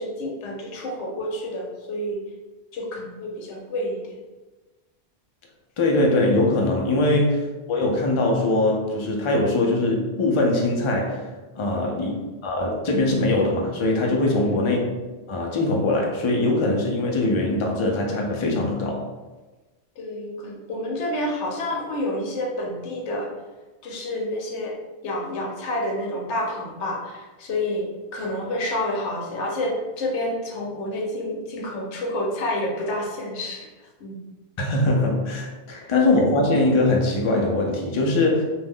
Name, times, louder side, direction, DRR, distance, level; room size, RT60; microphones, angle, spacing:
voice 1, 0.0-2.2 2.7-4.2 11.7-11.9 14.2-14.7 20.0-23.3 23.8-24.8 25.0-34.2 35.7-35.9, left 1 dB, 90° left, 0 dB, 0.9 m, -29 dB
voice 2, 5.8-11.2 11.6-14.8 15.3-19.0 34.6-38.4, left 2 dB, 55° left, 0 dB, 0.3 m, -22 dB
2.4 x 2.2 x 3.4 m, 1.2 s
omnidirectional pair, 1.1 m